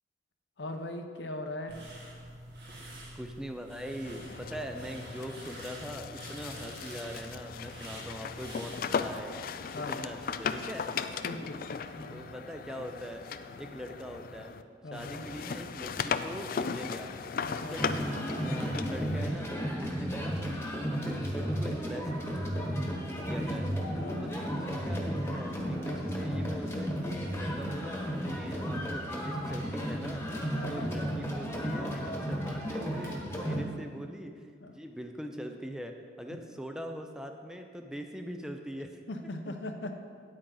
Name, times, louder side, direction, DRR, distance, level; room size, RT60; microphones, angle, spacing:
voice 1, 0.6-1.8 9.7-10.1 11.2-12.2 14.8-15.2 17.4-17.8 24.0-24.4 25.8-26.1 30.5-31.1 33.4-33.7 34.6-34.7 36.3-36.4 39.1-40.0, left 1 dB, 80° left, 6 dB, 0.8 m, -40 dB
sound 1, 1.7-9.2, right 1 dB, 65° right, 2.1 m, -46 dB
voice 2, 3.2-9.4 9.8-10.9 12.1-13.2 13.6-14.5 14.9-17.1 17.6-22.1 23.0-23.7 23.9-34.4 34.7-39.0 39.5-39.6, equal, 5° right, 4 dB, 0.5 m, -42 dB
sound 2, 4.0-14.6 14.9-19.3, left 6 dB, 50° left, 0.4 m, -37 dB
sound 3, 17.7-33.6, equal, 15° left, 1.3 m, -33 dB
9.8 x 8.7 x 3.9 m, 2.1 s
head